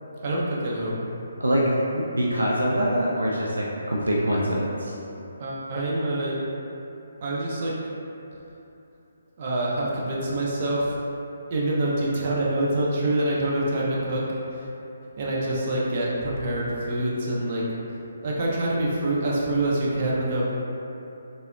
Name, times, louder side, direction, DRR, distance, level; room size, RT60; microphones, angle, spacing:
voice 1, 0.2-1.0 5.4-6.4 7.2-7.8 9.4-11.0 11.5-14.2 14.5-14.7 15.2-17.6 18.2-20.5, right 1 dB, 40° right, -6 dB, 0.6 m, -26 dB
voice 2, 1.4-4.9, equal, 85° right, -4 dB, 0.3 m, -24 dB
3.4 x 2.1 x 2.2 m, 2.9 s
figure-of-eight pair, 145°, 0 cm